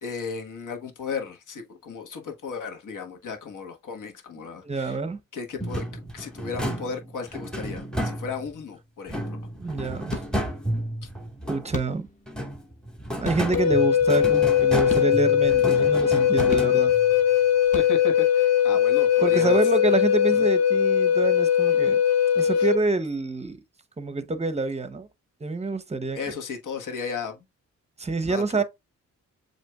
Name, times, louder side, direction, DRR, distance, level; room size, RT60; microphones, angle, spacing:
voice 1, 0.0-5.0 5.3-9.4 11.0-11.1 17.7-19.6 22.4-22.7 26.1-27.4 28.2-28.6, left 5 dB, 75° left, 1.4 m, -35 dB
voice 2, 4.4-5.2 9.6-10.2 11.5-12.1 13.2-16.9 19.2-22.0 22.3-23.6 24.0-25.1 25.4-26.2 28.0-28.6, right 3 dB, 20° right, 0.7 m, -27 dB
sound 1, 5.6-8.6 9.1-11.9 12.3-17.2, right 1 dB, ahead, 1.5 m, -32 dB
sound 2, 10.1-10.7 11.7-12.3 13.2-14.1 14.7-15.5 16.4-17.1 17.6-18.3, left 2 dB, 25° left, 1.0 m, -36 dB
Wind instrument woodwind instrument, 13.5-22.8, left 9 dB, 55° left, 0.6 m, -20 dB
7.5 x 2.9 x 2.3 m
cardioid pair, 105°, 32 cm